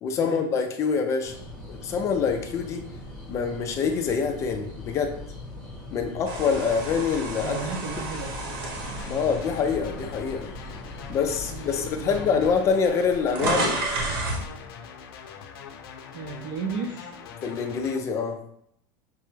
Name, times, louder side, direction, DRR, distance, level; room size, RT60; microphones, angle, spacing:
voice 1, 0.0-1.4 1.7-2.8 3.3-5.1 5.9-7.6 9.1-10.5 11.1-13.8 17.4-18.4, left 6 dB, 25° left, 5 dB, 0.3 m, -25 dB
sound 1, 1.2-12.6, left 2 dB, 5° left, 0.9 m, -40 dB
sound 2, 6.3-10.5 11.0-11.2 12.1-12.2 12.4-14.5, right 2 dB, 75° right, 1.2 m, -31 dB
voice 2, 7.4-8.6 11.4-12.7 16.1-17.1, right 4 dB, 50° right, 0 dB, 0.5 m, -35 dB
sound 3, 8.8-18.0, left 7 dB, 90° left, 0.6 m, -43 dB
5.8 x 2.2 x 3.2 m, 0.72 s
supercardioid pair, 165°, 12 cm